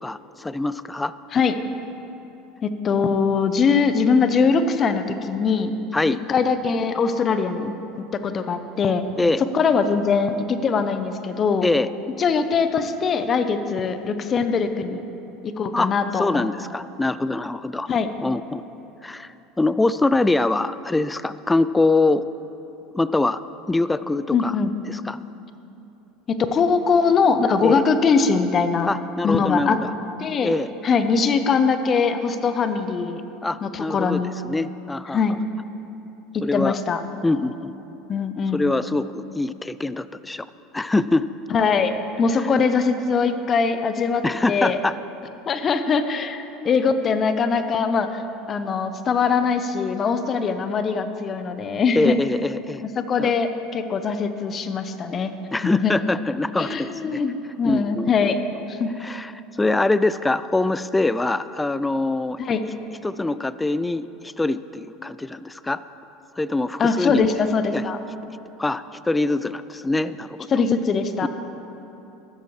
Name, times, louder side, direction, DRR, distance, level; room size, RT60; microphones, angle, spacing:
voice 1, 0.0-1.1 5.9-6.2 9.2-9.4 11.6-11.9 15.7-17.9 18.2-18.6 19.0-22.2 22.9-23.4 23.7-24.6 24.9-25.2 27.6-27.8 28.9-29.9 30.4-30.7 33.4-35.2 36.4-36.8 37.2-37.7 38.5-40.5 40.7-41.3 42.4-42.5 44.2-45.0 51.9-52.8 53.2-53.3 55.5-57.2 57.6-58.3 59.0-62.4 63.0-65.8 66.4-67.3 67.7-67.8 68.6-70.6 71.2-71.3, left 2 dB, 10° left, 15 dB, 0.3 m, -24 dB
voice 2, 2.6-5.7 6.3-7.7 8.1-9.0 9.5-11.7 12.2-15.0 15.4-16.5 17.9-18.1 24.3-24.7 26.3-28.9 29.2-29.8 30.2-30.5 30.8-33.2 33.6-34.3 35.1-35.4 36.3-37.0 38.1-38.6 41.5-44.8 45.5-48.2 48.5-52.2 53.0-55.3 55.8-56.0 56.6-58.4 58.7-58.9 62.4-62.6 66.8-68.0 70.5-71.3, left 5 dB, 35° left, 9 dB, 0.8 m, -22 dB
14.0 x 13.0 x 3.2 m, 3.0 s
hypercardioid pair, 90°, 0 cm